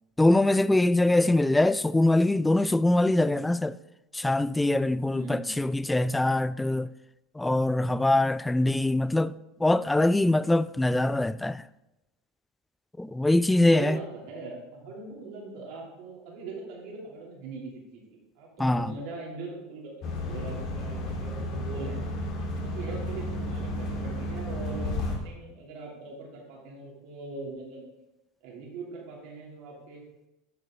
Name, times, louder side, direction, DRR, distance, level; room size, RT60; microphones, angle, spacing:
voice 1, 0.2-3.8 4.1-6.9 7.4-9.3 9.6-11.6 13.0-14.0 18.6-18.9, left 2 dB, 10° left, 0.3 m, -23 dB
voice 2, 5.1-5.6 13.5-22.0 22.6-27.8 28.4-30.0, right 3 dB, 65° right, 2.8 m, -41 dB
sound 1, 20.0-25.2, left 1 dB, 55° left, 1.8 m, -32 dB
9.5 x 6.6 x 3.8 m
hypercardioid pair, 85°, 0 cm